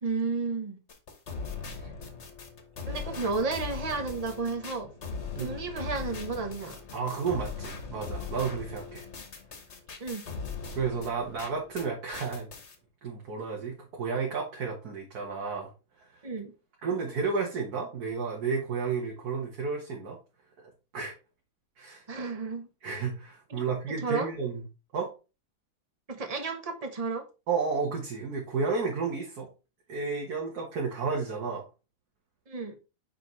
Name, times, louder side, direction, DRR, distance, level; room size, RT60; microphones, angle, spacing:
voice 1, 0.0-0.8 2.9-4.9 5.4-6.8 10.0-10.2 16.2-16.5 22.1-22.7 23.5-23.6 24.0-24.3 26.1-27.2 32.5-32.8, right 4 dB, 30° right, 0.9 m, -32 dB
sound 1, 0.9-11.9 12.1-12.7, left 4 dB, 50° left, 1.3 m, -40 dB
voice 2, 6.9-9.1 10.7-12.5 13.0-15.7 16.0-16.2 16.8-20.2 20.6-21.2 21.8-22.0 22.8-24.6 24.9-25.1 27.5-29.5 29.9-31.7, right 5 dB, 70° right, 1.8 m, -32 dB
6.5 x 5.0 x 3.1 m
omnidirectional pair, 1.7 m